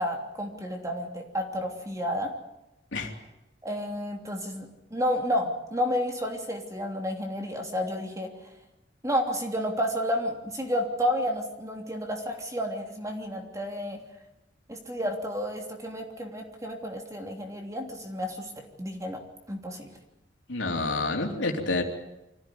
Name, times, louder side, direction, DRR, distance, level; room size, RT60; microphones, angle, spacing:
voice 1, 0.0-2.3 3.6-8.3 9.0-14.0 14.7-19.2 19.5-19.9, equal, 15° right, 2 dB, 3.1 m, -31 dB
voice 2, 20.5-21.8, left 2 dB, 90° left, 2 dB, 3.5 m, -28 dB
25.0 x 15.5 x 9.5 m, 0.95 s
head